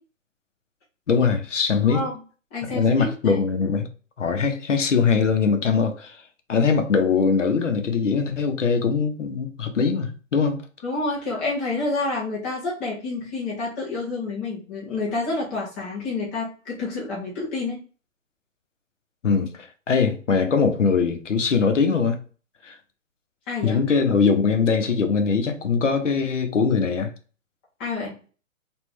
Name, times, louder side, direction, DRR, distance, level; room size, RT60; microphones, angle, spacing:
voice 1, 1.1-2.0 2.7-3.9 4.2-6.2 6.5-10.6 19.2-22.2 22.6-22.8 23.6-27.1, left 5 dB, 60° left, 0.8 m, -21 dB
voice 2, 1.8-2.2 2.5-3.4 10.8-17.8 23.5-23.8 27.8-28.1, left 3 dB, 10° left, 0.5 m, -29 dB
3.6 x 2.4 x 3.1 m
figure-of-eight pair, 130°, 41 cm